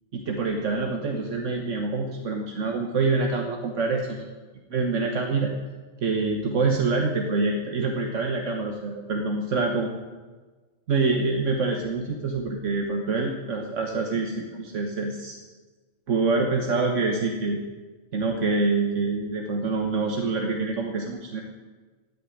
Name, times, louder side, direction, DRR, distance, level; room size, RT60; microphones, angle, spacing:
voice 1, 0.1-4.3 4.7-5.5 6.0-9.9 10.9-15.4 16.1-17.6 18.1-21.4, right 3 dB, 70° right, 3 dB, 1.5 m, -26 dB
16.5 x 6.9 x 9.7 m, 1.3 s
omnidirectional pair, 1.3 m